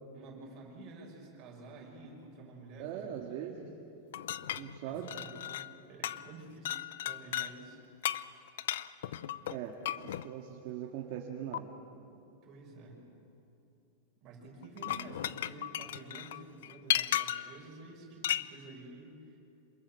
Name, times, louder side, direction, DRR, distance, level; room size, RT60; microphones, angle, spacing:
voice 1, 0.1-3.7 4.9-6.7 7.0-7.8 12.4-13.0 14.2-19.4, right 2 dB, 25° right, -2 dB, 6.5 m, -50 dB
voice 2, 2.8-3.7 4.6-5.2 9.5-9.8 10.0-11.7, right 10 dB, 40° right, 0 dB, 2.1 m, -40 dB
sound 1, 4.1-5.8 6.0-6.3 6.6-7.5 8.0-10.3 11.5-11.6 14.6-17.6 18.2-18.5, left 12 dB, 65° left, 0.7 m, -35 dB
28.0 x 27.5 x 7.7 m, 2.7 s
supercardioid pair, 180°, 0 cm